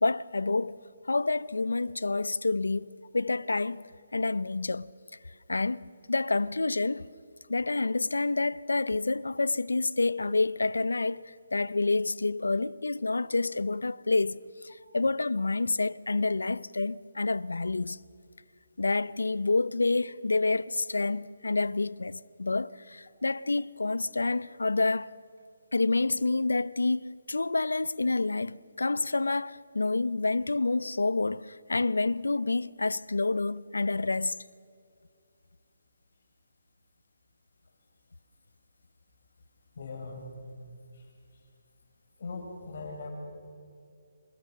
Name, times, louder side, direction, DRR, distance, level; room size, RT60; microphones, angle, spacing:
voice 1, 0.0-0.8 1.1-3.8 4.1-4.9 5.5-7.1 7.5-14.4 14.9-18.0 18.8-25.1 25.7-34.4, left 3 dB, 85° left, 0.5 m, -28 dB
voice 2, 39.8-40.2 42.2-43.1, left 4 dB, 60° left, 6.6 m, -39 dB
28.0 x 17.5 x 6.5 m
figure-of-eight pair, 150°, 0 cm